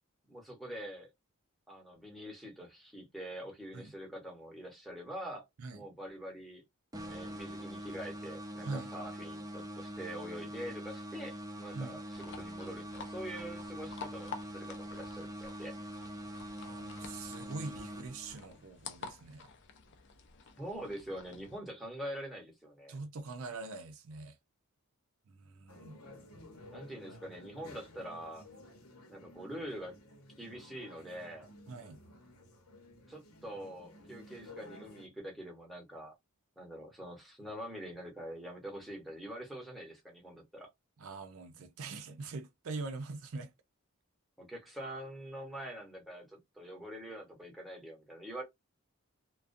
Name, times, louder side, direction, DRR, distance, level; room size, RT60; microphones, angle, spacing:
voice 1, 0.3-1.1 1.7-5.4 5.7-6.6 7.1-15.7 20.6-23.0 26.7-28.5 29.1-30.0 30.4-31.5 33.1-36.1 36.6-40.7 44.4-48.4, equal, ahead, 0.9 m, -45 dB
sound 1, 6.9-18.6, equal, 15° right, 0.5 m, -44 dB
sound 2, 12.1-21.6, left 5 dB, 55° left, 0.5 m, -50 dB
voice 2, 16.6-19.5 22.9-24.4 25.3-26.0 31.7-32.0 41.0-43.5, right 3 dB, 70° right, 0.5 m, -43 dB
sound 3, 25.7-35.1, left 1 dB, 90° left, 0.9 m, -54 dB
2.3 x 2.2 x 2.5 m
head